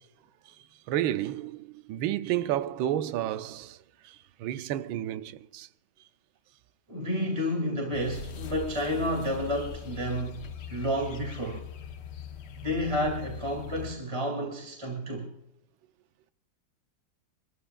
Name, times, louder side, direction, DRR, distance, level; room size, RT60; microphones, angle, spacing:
voice 1, 0.9-5.7, right 12 dB, 75° right, 1.4 m, -31 dB
voice 2, 6.9-11.7 12.6-15.3, equal, 15° right, 2.3 m, -30 dB
sound 1, 7.9-13.9, left 8 dB, 60° left, 1.3 m, -41 dB
24.0 x 14.0 x 2.3 m
omnidirectional pair, 2.3 m